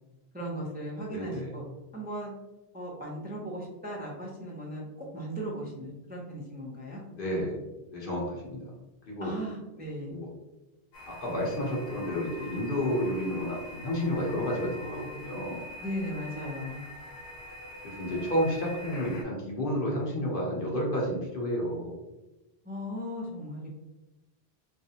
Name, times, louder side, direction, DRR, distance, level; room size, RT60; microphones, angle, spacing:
voice 1, 0.3-1.6 1.9-2.3 2.7-7.0 9.2-10.2 15.8-16.8 22.6-23.7, equal, 10° right, -4 dB, 0.5 m, -37 dB
voice 2, 1.1-1.6 7.1-7.6 7.9-8.6 9.1-9.3 10.1-10.3 11.1-15.7 17.8-21.9, equal, 60° left, -3 dB, 1.0 m, -31 dB
sound 1, 10.9-19.2, left 1 dB, 85° left, 0.9 m, -44 dB
3.1 x 2.5 x 2.8 m, 0.99 s
omnidirectional pair, 1.0 m